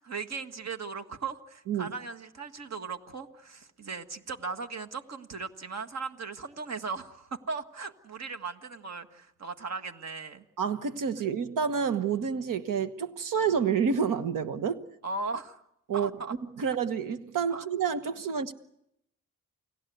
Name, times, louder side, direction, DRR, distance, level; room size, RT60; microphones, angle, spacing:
voice 1, 0.0-10.4 15.0-15.6 15.9-16.4 17.5-17.7, right 4 dB, 55° right, 1.7 m, -38 dB
voice 2, 10.6-14.9 15.9-16.1 16.6-18.5, right 6 dB, 85° right, 1.3 m, -29 dB
29.5 x 17.5 x 9.4 m
cardioid pair, 95°, 32 cm